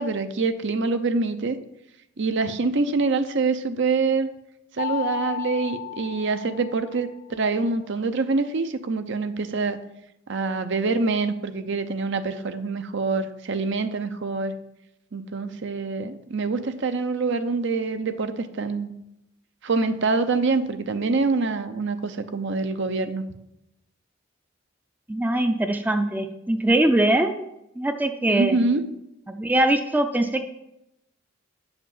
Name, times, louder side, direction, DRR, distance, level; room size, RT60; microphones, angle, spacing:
voice 1, 0.0-1.6 2.2-4.3 4.7-9.8 10.3-14.5 15.1-18.9 19.6-23.2 28.3-28.9, right 3 dB, 60° right, 9 dB, 0.7 m, -25 dB
Mallet percussion, 4.8-7.3, left 12 dB, 55° left, 0.9 m, -34 dB
voice 2, 25.1-27.4 27.8-28.6 29.3-30.4, right 1 dB, 10° right, 6 dB, 0.5 m, -22 dB
9.0 x 5.1 x 7.2 m, 0.87 s
head